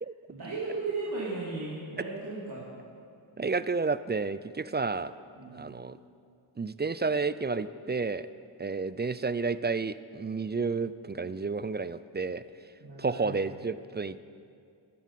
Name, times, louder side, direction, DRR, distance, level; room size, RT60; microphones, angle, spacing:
voice 1, 0.3-2.7 5.4-5.7 12.8-13.3, right 3 dB, 50° right, -6 dB, 3.0 m, -36 dB
voice 2, 3.4-5.1 5.5-6.0 6.6-8.3 8.6-12.4 13.0-14.2, right 4 dB, 25° right, 15 dB, 0.4 m, -31 dB
14.0 x 11.0 x 5.9 m, 2.4 s
cardioid pair, 45°, 48 cm